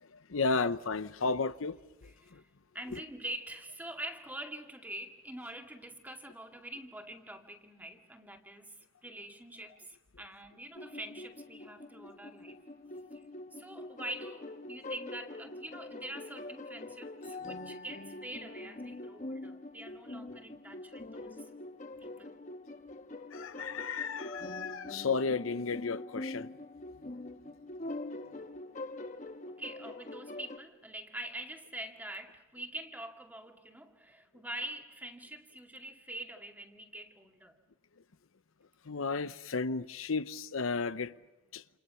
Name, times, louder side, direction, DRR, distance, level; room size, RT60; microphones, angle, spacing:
voice 1, 0.3-2.4 2.9-3.0 23.3-26.5 38.9-41.1 41.5-41.6, left 4 dB, 85° left, 0.8 m, -33 dB
voice 2, 2.0-2.4 2.7-12.6 13.1-21.5 22.0-22.4 29.5-37.6, right 1 dB, 10° right, 2.3 m, -45 dB
sound 1, 10.7-30.6, left 2 dB, 40° left, 1.3 m, -44 dB
28.5 x 28.5 x 5.7 m
head